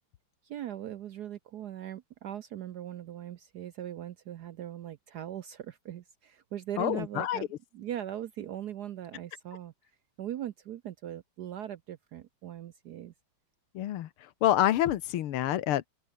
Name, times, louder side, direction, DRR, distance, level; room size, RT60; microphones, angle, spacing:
voice 1, 0.4-7.5 7.7-9.7 10.2-13.1, right 11 dB, 70° right, 1.0 m, -40 dB
voice 2, 6.8-7.4 13.7-15.9, left 12 dB, 80° left, 1.9 m, -27 dB
omnidirectional pair, 2.4 m